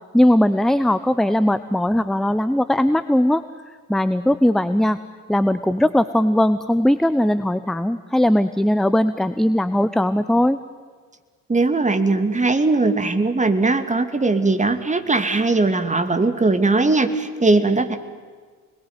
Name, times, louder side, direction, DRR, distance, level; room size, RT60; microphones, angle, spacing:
voice 1, 0.1-3.4 3.9-5.0 5.3-10.6, left 1 dB, ahead, 13 dB, 0.8 m, -19 dB
voice 2, 11.5-18.0, right 3 dB, 15° right, 8 dB, 2.5 m, -19 dB
29.0 x 21.0 x 9.7 m, 1.5 s
figure-of-eight pair, 55°, 46 cm